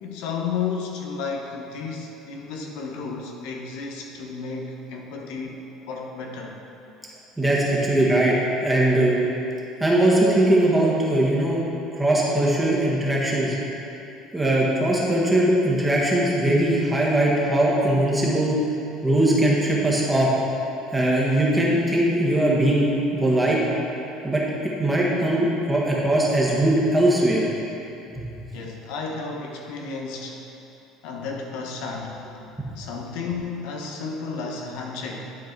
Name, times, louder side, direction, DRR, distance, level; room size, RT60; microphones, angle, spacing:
voice 1, 0.0-6.6 28.5-30.4 31.0-32.3 32.8-35.4, left 5 dB, 75° left, 0 dB, 0.9 m, -32 dB
voice 2, 7.4-8.3 8.6-9.2 9.8-11.6 12.0-13.5 14.3-18.5 19.0-20.3 20.9-23.6 24.2-24.4 24.8-27.5 28.2-28.3, right 1 dB, 10° right, -5 dB, 1.5 m, -20 dB
11.0 x 4.6 x 4.5 m, 2.9 s
cardioid pair, 130°, 0 cm